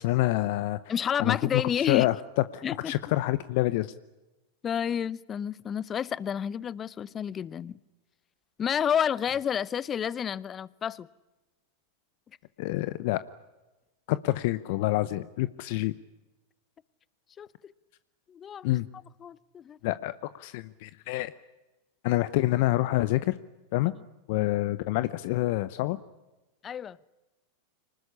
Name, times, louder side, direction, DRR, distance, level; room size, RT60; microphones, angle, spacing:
voice 1, 0.0-0.8 1.2-1.6 1.9-2.2 2.5-3.9 12.6-13.2 14.1-15.9 18.6-18.8 19.8-21.3 22.0-23.4 23.7-23.9 24.3-26.0, left 17 dB, 60° left, 0.8 m, -27 dB
voice 2, 0.9-2.1 2.6-2.9 4.6-7.8 8.6-11.1 17.4-17.7 18.3-18.7 19.2-19.8 26.6-27.1, left 8 dB, 30° left, 0.8 m, -30 dB
25.0 x 20.0 x 9.9 m
hypercardioid pair, 100°, 0 cm